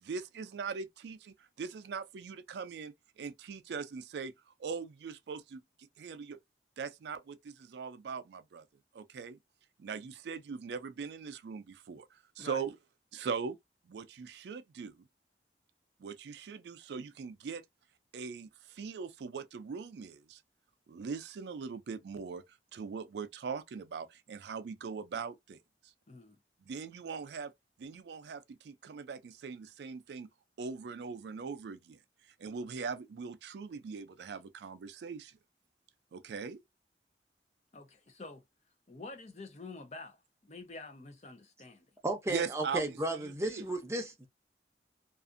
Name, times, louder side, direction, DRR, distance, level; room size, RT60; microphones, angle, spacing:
voice 1, 0.0-4.3 4.6-5.6 6.0-6.4 6.8-8.6 8.9-9.4 9.8-12.1 12.4-12.7 13.1-13.6 13.9-14.9 16.0-17.6 18.1-20.4 20.9-22.4 22.7-25.6 26.7-27.5 27.8-30.3 30.6-32.0 32.4-35.3 36.1-36.6 42.3-42.9 43.2-43.6, right 5 dB, 75° right, 0.3 m, -40 dB
voice 2, 26.1-26.4 37.7-38.4 38.9-41.8, left 3 dB, 40° left, 0.6 m, -48 dB
voice 3, 42.0-44.3, right 1 dB, 15° right, 0.6 m, -34 dB
2.5 x 2.4 x 2.5 m
head